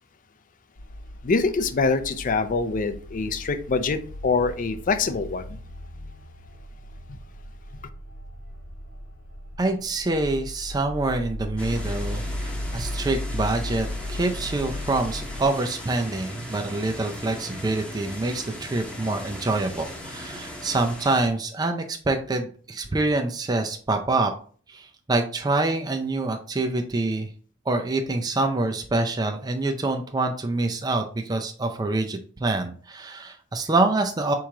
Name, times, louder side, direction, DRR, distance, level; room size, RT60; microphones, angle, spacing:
sound 1, 0.8-15.4, left 1 dB, 85° left, 0.9 m, -36 dB
voice 1, 1.2-5.6, left 4 dB, 40° left, 0.4 m, -24 dB
voice 2, 9.6-24.3 24.7-27.3 27.7-34.3, right 2 dB, 20° right, 0.4 m, -26 dB
sound 2, 11.6-21.3, left 1 dB, 5° left, 0.8 m, -38 dB
4.6 x 3.0 x 3.7 m
head